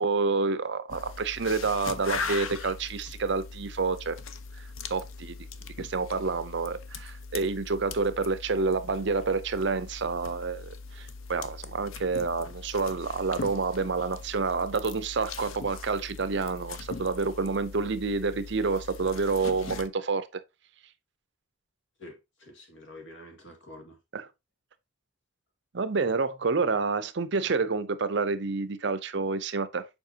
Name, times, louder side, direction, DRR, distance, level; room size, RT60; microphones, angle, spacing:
voice 1, 0.0-4.2 4.9-5.4 5.8-20.4 24.1-24.2 25.7-29.9, right 4 dB, 60° right, 0.6 m, -28 dB
sound 1, 0.9-19.9, left 4 dB, 80° left, 0.7 m, -40 dB
voice 2, 22.0-24.0, left 1 dB, 65° left, 2.1 m, -47 dB
7.1 x 5.1 x 2.8 m
head